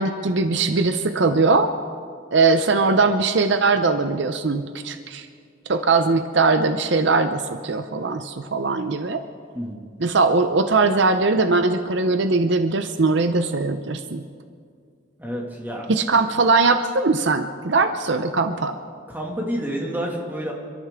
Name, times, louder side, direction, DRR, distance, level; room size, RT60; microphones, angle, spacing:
voice 1, 0.0-1.8 2.3-5.3 5.7-9.2 10.0-14.2 15.9-18.8, right 3 dB, 65° right, 9 dB, 0.7 m, -20 dB
voice 2, 9.5-9.9 15.2-16.1 19.1-20.5, equal, 10° right, -2 dB, 2.1 m, -29 dB
29.0 x 13.0 x 3.7 m, 2.1 s
head